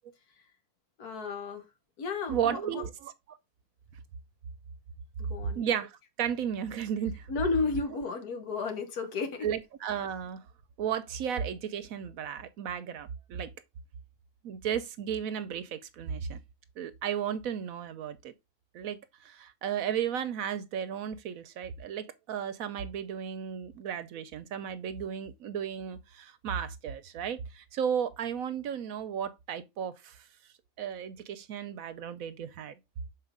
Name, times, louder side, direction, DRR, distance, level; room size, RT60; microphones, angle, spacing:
voice 1, 1.0-1.6 2.0-2.8 5.2-5.6 7.3-9.5, left 4 dB, 75° left, 1.8 m, -33 dB
voice 2, 2.3-3.4 5.5-7.3 9.4-10.4 10.8-13.5 14.4-16.4 16.8-18.3 18.7-30.3 30.8-32.8, right 8 dB, 70° right, 1.0 m, -34 dB
6.7 x 4.5 x 3.6 m
omnidirectional pair, 1.6 m